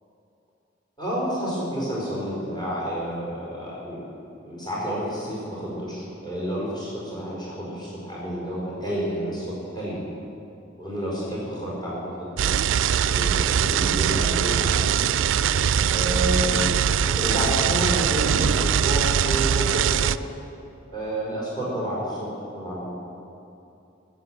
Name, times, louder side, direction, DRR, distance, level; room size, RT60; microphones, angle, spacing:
voice 1, 1.0-4.0 4.4-10.0 10.8-12.5 13.1-14.7 15.0-15.1 15.9-20.1 20.9-22.8, equal, 25° left, -6 dB, 4.5 m, -30 dB
sound 1, 12.4-20.2, right 8 dB, 80° right, 0.4 m, -22 dB
19.0 x 7.9 x 7.8 m, 2.7 s
head